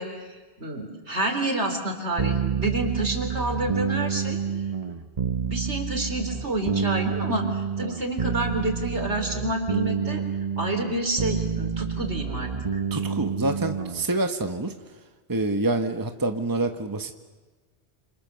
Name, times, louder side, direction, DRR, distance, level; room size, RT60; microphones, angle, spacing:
voice 1, 0.0-4.4 5.4-10.2 10.6-12.8, right 1 dB, 75° right, 5 dB, 4.2 m, -29 dB
sound 1, 2.2-14.0, right 6 dB, 35° right, 1.1 m, -28 dB
voice 2, 12.9-14.7 15.3-17.1, right 2 dB, 20° right, 6 dB, 1.4 m, -26 dB
28.0 x 28.0 x 7.0 m, 1.3 s
omnidirectional pair, 1.2 m